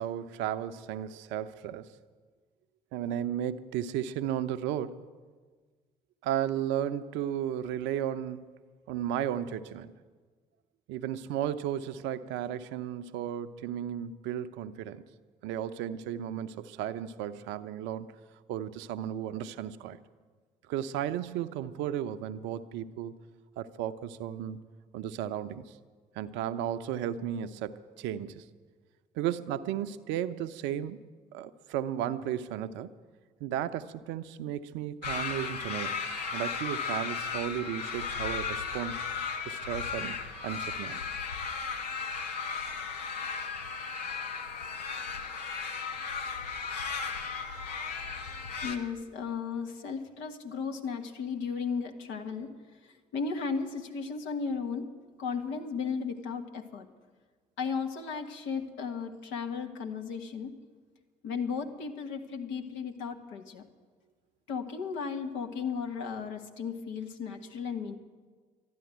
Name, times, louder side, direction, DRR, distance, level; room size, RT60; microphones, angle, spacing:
voice 1, 0.0-2.0 2.9-5.0 6.2-8.5 8.9-9.9 10.9-15.0 15.4-18.1 18.5-20.0 20.7-23.1 23.6-24.6 24.9-25.8 26.1-28.4 29.1-31.0 31.3-32.9 33.4-36.0 36.3-39.0 39.4-41.0, right 10 dB, 65° right, 13 dB, 0.6 m, -34 dB
sound 1, 35.0-48.8, left 5 dB, 85° left, 0.9 m, -35 dB
voice 2, 48.6-52.5 53.1-54.8 55.2-56.9 57.6-60.5 61.2-63.6 64.5-68.0, left 5 dB, 65° left, 4 dB, 1.5 m, -35 dB
12.5 x 11.0 x 9.2 m, 1.5 s
figure-of-eight pair, 45°, 20 cm